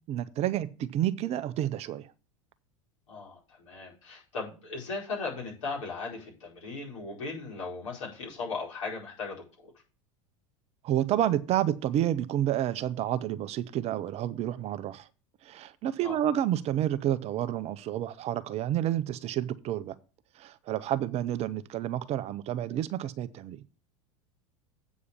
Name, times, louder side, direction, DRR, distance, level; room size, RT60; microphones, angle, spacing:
voice 1, 0.1-2.1 10.8-15.1 15.4-19.9 20.4-23.6, right 12 dB, 40° right, 0.7 m, -29 dB
voice 2, 3.1-9.7 16.0-16.2, left 4 dB, 70° left, 4.8 m, -37 dB
8.3 x 4.9 x 7.0 m
figure-of-eight pair, 85°, 17 cm